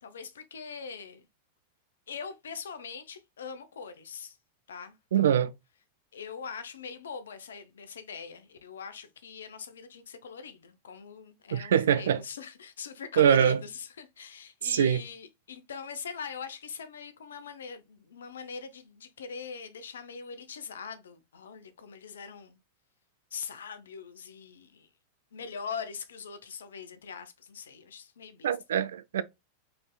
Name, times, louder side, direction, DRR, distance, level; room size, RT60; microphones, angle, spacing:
voice 1, 0.0-1.3 2.1-4.4 4.7-5.5 6.1-22.6 23.3-24.9 25.3-28.5, left 6 dB, 65° left, 0.6 m, -42 dB
voice 2, 5.1-5.5 11.5-12.2 13.2-13.6 14.6-15.0 28.4-29.2, right 9 dB, 60° right, 0.3 m, -23 dB
4.0 x 3.3 x 2.2 m
figure-of-eight pair, 90°, 0 cm